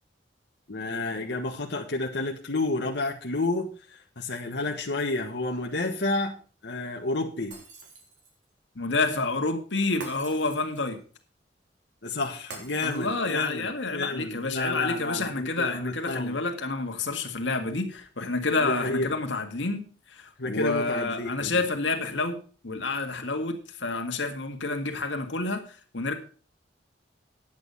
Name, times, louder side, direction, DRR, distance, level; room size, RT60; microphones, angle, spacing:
voice 1, 0.7-6.3 6.6-7.6 12.0-16.4 18.6-19.2 20.4-21.6, left 2 dB, 65° left, 0 dB, 1.4 m, -30 dB
Shatter, 7.5-8.4 10.0-11.0 12.5-13.5, right 3 dB, 70° right, 3.8 m, -45 dB
voice 2, 8.8-11.0 12.8-19.8 20.1-22.4 22.6-25.6 25.9-26.1, left 3 dB, 90° left, 5 dB, 1.9 m, -29 dB
10.5 x 8.7 x 5.6 m, 0.40 s
head